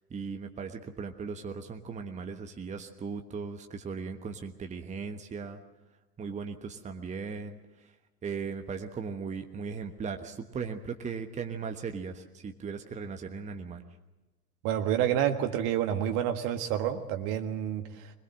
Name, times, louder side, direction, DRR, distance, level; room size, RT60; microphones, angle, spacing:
voice 1, 0.1-5.6 6.2-7.6 8.2-13.8, right 5 dB, 15° right, 6 dB, 1.3 m, -38 dB
voice 2, 14.6-18.1, right 10 dB, 40° right, 6 dB, 1.6 m, -29 dB
22.5 x 21.0 x 7.7 m, 1.1 s
figure-of-eight pair, 95°, 49 cm